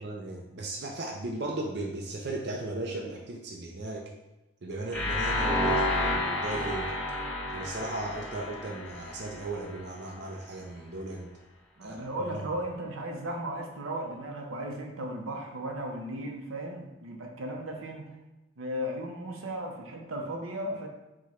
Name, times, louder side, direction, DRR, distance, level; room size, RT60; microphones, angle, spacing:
voice 1, 0.0-4.1 4.6-6.9 7.5-11.3 11.8-12.6, right 2 dB, 55° right, 0 dB, 0.5 m, -36 dB
sound 1, 4.9-9.8, left 1 dB, 10° left, 1.1 m, -30 dB
voice 2, 11.8-18.1 18.6-20.9, right 1 dB, 90° right, 2 dB, 0.7 m, -36 dB
4.8 x 2.3 x 4.2 m, 0.99 s
head